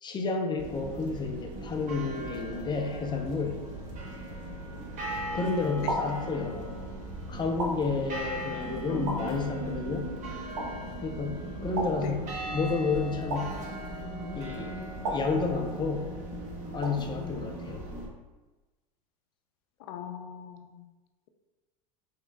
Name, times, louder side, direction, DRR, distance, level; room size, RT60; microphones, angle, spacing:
voice 1, 0.0-3.6 5.3-6.7 7.3-10.1 11.0-13.6 14.3-14.8 15.1-16.1 16.7-17.8, left 4 dB, 25° left, 4 dB, 0.6 m, -31 dB
sound 1, 0.6-18.1, right 1 dB, 40° right, 1.0 m, -38 dB
sound 2, 4.7-5.2 5.9-6.8 7.6-8.5 9.1-9.9 10.6-11.2 11.8-12.7 13.3-14.2 15.0-16.0 16.8-17.4, right 1 dB, 70° right, 1.4 m, -37 dB
voice 2, 8.9-9.4 12.0-12.2 19.9-20.8, left 9 dB, 65° left, 7 dB, 0.5 m, -39 dB
4.9 x 3.6 x 2.3 m, 1.2 s
hypercardioid pair, 105°, 20 cm